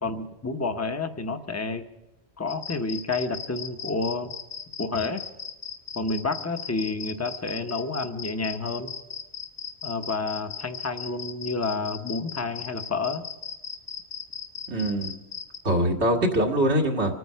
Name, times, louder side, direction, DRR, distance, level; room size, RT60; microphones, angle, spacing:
voice 1, 0.0-1.8 2.4-4.3 4.8-5.2 5.9-8.9 9.8-13.2, left 3 dB, 15° left, 7 dB, 0.9 m, -29 dB
sound 1, 2.5-15.6, left 6 dB, 65° left, 1.3 m, -37 dB
voice 2, 14.7-15.1 15.6-17.1, right 1 dB, 85° right, 0 dB, 2.0 m, -23 dB
25.5 x 9.4 x 5.7 m, 1.0 s
omnidirectional pair, 1.1 m